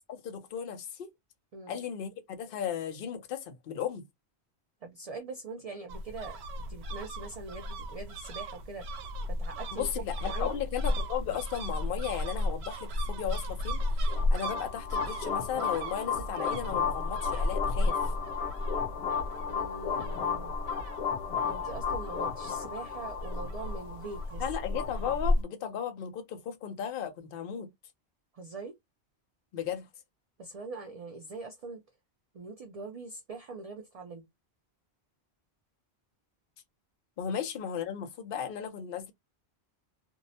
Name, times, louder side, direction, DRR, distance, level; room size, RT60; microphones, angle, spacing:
voice 1, 0.1-1.1 1.7-4.0 9.7-18.0 24.4-27.7 29.5-29.9 37.2-39.1, left 8 dB, 60° left, 0.8 m, -35 dB
voice 2, 4.8-6.4 6.7-8.9 9.3-9.9 10.2-10.6 19.5-20.6 21.4-24.4 28.3-28.7 30.4-31.8 32.3-34.2, right 3 dB, 55° right, 0.4 m, -42 dB
sound 1, 5.9-25.4, left 1 dB, 75° right, 0.8 m, -34 dB
sound 2, 13.8-25.2, left 7 dB, 85° left, 1.0 m, -34 dB
2.6 x 2.0 x 2.7 m
omnidirectional pair, 1.1 m